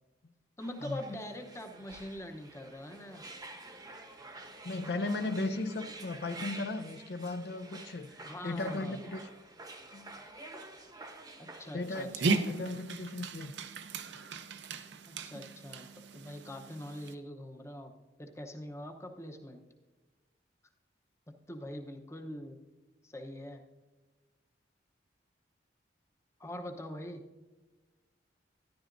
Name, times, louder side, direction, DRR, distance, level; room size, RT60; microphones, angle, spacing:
voice 1, 0.6-3.3 8.2-9.0 11.4-12.4 15.1-17.9 18.2-19.6 21.3-22.6 23.0-23.6 26.4-27.2, left 1 dB, 15° left, 4 dB, 0.8 m, -43 dB
sound 1, 0.6-12.0, right 2 dB, 20° right, 0.9 m, -49 dB
voice 2, 4.6-9.2 9.9-10.1 11.7-13.5, left 2 dB, 60° left, 8 dB, 0.5 m, -36 dB
Dog, 11.8-17.1, right 3 dB, 75° right, 0.6 m, -36 dB
13.0 x 11.0 x 2.6 m, 1.3 s
head